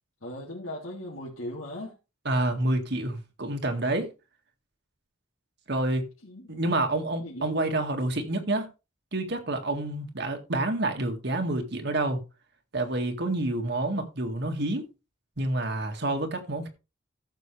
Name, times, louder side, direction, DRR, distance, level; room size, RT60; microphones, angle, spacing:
voice 1, 0.2-1.9 6.2-6.5 7.2-7.7, left 1 dB, 85° left, 3.2 m, -38 dB
voice 2, 2.3-4.1 5.7-6.1 6.5-8.7 9.1-12.2 12.7-14.8 15.4-16.7, right 2 dB, 55° right, 2.0 m, -28 dB
14.5 x 6.9 x 3.3 m
head